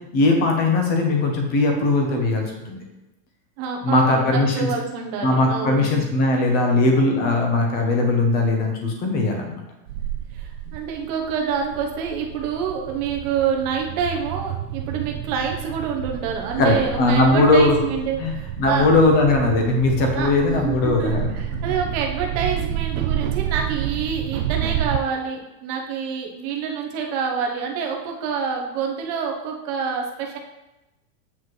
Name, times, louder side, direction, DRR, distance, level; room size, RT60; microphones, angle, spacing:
voice 1, 0.1-2.8 3.8-4.7 5.2-9.6 10.7-10.8 16.6-17.8 18.2-21.3, left 2 dB, 20° left, 2 dB, 0.8 m, -19 dB
voice 2, 3.6-5.9 10.3-18.9 20.1-30.4, right 6 dB, 25° right, 1 dB, 0.7 m, -27 dB
sound 1, 9.9-25.0, right 11 dB, 55° right, 0.5 m, -30 dB
7.8 x 7.2 x 3.1 m, 0.98 s
supercardioid pair, 175°, 49 cm